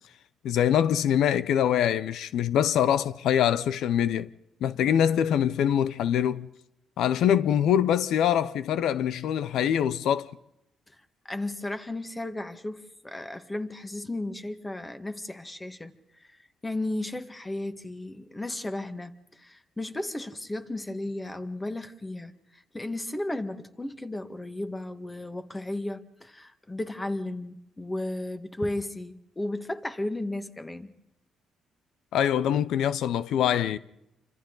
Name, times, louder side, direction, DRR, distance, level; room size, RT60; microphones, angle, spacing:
voice 1, 0.4-4.3 4.6-6.5 7.0-10.3 32.1-33.8, left 9 dB, 80° left, 0.7 m, -24 dB
voice 2, 11.3-15.9 16.3-16.4 16.6-30.9, left 1 dB, 15° left, 1.7 m, -34 dB
28.0 x 25.5 x 4.0 m
cardioid pair, 90°, 0 cm